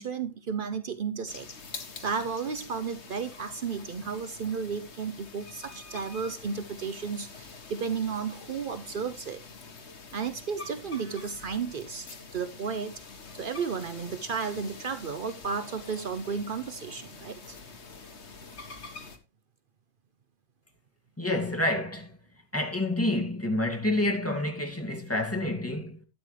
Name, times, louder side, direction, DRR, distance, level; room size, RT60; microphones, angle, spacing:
voice 1, 0.0-1.5 1.8-9.4 10.1-13.0 13.3-17.6, right 6 dB, 90° right, 0.4 m, -33 dB
sound 1, 1.3-19.2, left 4 dB, 40° left, 1.7 m, -46 dB
voice 2, 21.2-22.2 22.5-26.0, left 1 dB, 10° left, 2.1 m, -28 dB
12.0 x 9.8 x 3.3 m
omnidirectional pair, 1.9 m